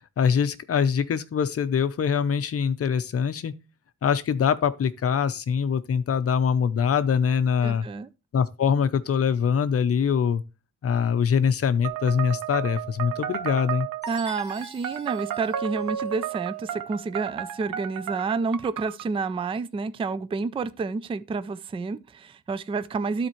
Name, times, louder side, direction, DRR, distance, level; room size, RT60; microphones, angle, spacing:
voice 1, 0.2-3.5 4.0-7.9 8.3-10.4 10.8-13.9, left 7 dB, 50° left, 0.7 m, -23 dB
voice 2, 7.6-8.1 14.1-23.3, right 4 dB, 20° right, 0.3 m, -29 dB
sound 1, 11.8-19.1, right 10 dB, 90° right, 0.8 m, -33 dB
Chime, 14.0-16.3, left 1 dB, 15° left, 5.3 m, -48 dB
13.0 x 4.4 x 3.1 m
wide cardioid pair, 145°, 31 cm